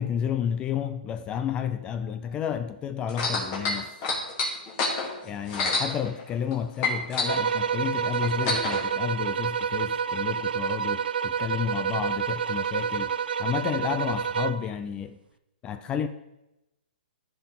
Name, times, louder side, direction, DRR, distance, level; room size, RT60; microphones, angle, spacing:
voice 1, 0.0-3.9 5.2-15.2 15.6-16.1, left 8 dB, 20° left, 0.4 m, -31 dB
sound 1, 3.1-6.5 6.8-8.8 9.6-9.7, left 3 dB, 35° left, 2.7 m, -28 dB
sound 2, 7.3-14.7, right 7 dB, 85° right, 0.4 m, -28 dB
14.5 x 5.4 x 3.9 m
hypercardioid pair, 145°, 5 cm